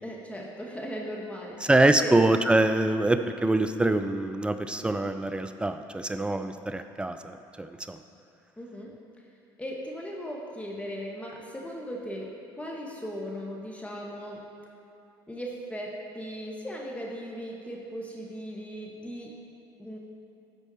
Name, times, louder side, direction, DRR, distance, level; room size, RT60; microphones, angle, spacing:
voice 1, 0.0-1.6 2.0-2.1 8.6-8.9 9.6-14.4 15.3-19.3 19.8-20.0, equal, 10° left, -2 dB, 1.5 m, -38 dB
voice 2, 1.6-8.0, right 2 dB, 10° right, 9 dB, 0.5 m, -24 dB
13.0 x 4.5 x 4.3 m, 2.8 s
hypercardioid pair, 65°, 12 cm